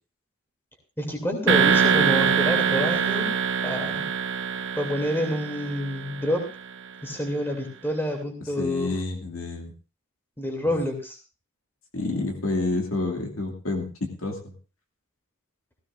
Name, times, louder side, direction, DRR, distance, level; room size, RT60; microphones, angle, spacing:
voice 1, 1.0-3.3 3.6-4.1 4.8-6.4 7.0-8.9 10.4-11.2, equal, 10° left, 2 dB, 2.8 m, -28 dB
sound 1, 1.5-6.4, right 6 dB, 60° right, 1.0 m, -24 dB
voice 2, 8.6-9.7 11.9-14.5, left 2 dB, 70° left, 2 dB, 2.5 m, -29 dB
16.5 x 16.0 x 2.6 m, 0.34 s
head